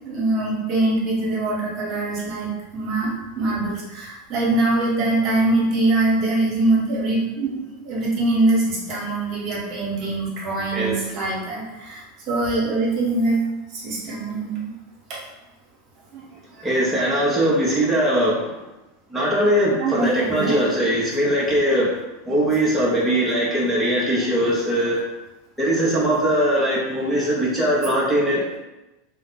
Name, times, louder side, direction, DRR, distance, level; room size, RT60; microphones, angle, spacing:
voice 1, 0.0-13.4 13.7-14.7 15.1-15.2 16.1-16.2 16.5-16.7 19.8-20.6, right 2 dB, 45° right, -4 dB, 1.2 m, -23 dB
voice 2, 10.7-11.0 16.6-18.6 19.1-22.0 22.2-25.0 25.6-28.6, equal, 5° right, -7 dB, 1.0 m, -21 dB
2.7 x 2.2 x 4.1 m, 1.0 s
hypercardioid pair, 90°, 0 cm